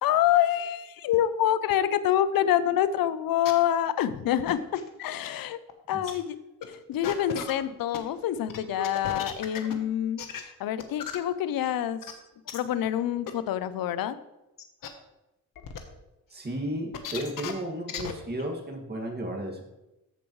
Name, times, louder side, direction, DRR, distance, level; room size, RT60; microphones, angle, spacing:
voice 1, 0.0-5.6 5.9-6.4 6.7-12.0 12.5-14.2, left 11 dB, 90° left, 14 dB, 0.6 m, -26 dB
sound 1, 3.4-3.5 4.5-4.9 5.2-5.3 5.7-5.8 6.1-6.2 6.6-6.7 7.0-8.1 8.5-9.7 10.2-10.4 10.8-11.2 11.6-11.7 12.0-12.1 12.5-12.6 13.3-13.4 14.0-14.1 14.6-14.9 15.6-15.8 16.9-17.5 17.9-18.1 18.4-18.5, left 8 dB, 75° left, 1.3 m, -35 dB
voice 2, 16.3-19.6, right 1 dB, 30° right, 2 dB, 2.2 m, -34 dB
14.0 x 7.1 x 3.2 m, 0.95 s
cardioid pair, 115°, 34 cm